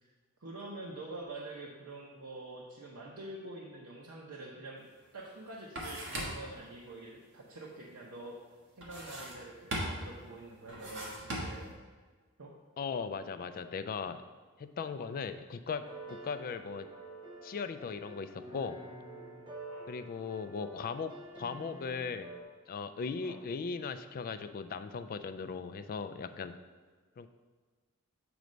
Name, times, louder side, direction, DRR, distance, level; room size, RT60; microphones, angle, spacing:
voice 1, 0.4-4.8 5.1-8.4 8.8-11.7 12.4-12.5 19.7-19.9 23.2-23.4, right 2 dB, 90° right, -3 dB, 0.8 m, -46 dB
sound 1, 4.9-5.0 5.3-6.6 8.8-9.5 9.7-10.2 10.7-11.7, right 1 dB, 65° right, 1.4 m, -38 dB
voice 2, 12.8-14.2 14.6-16.9 17.4-18.8 19.9-22.3 22.7-26.5 27.2-27.3, left 5 dB, 40° left, 10 dB, 0.3 m, -38 dB
sound 2, 15.7-22.4, right 2 dB, 20° right, 0.8 m, -48 dB
7.8 x 3.2 x 5.1 m, 1.4 s
head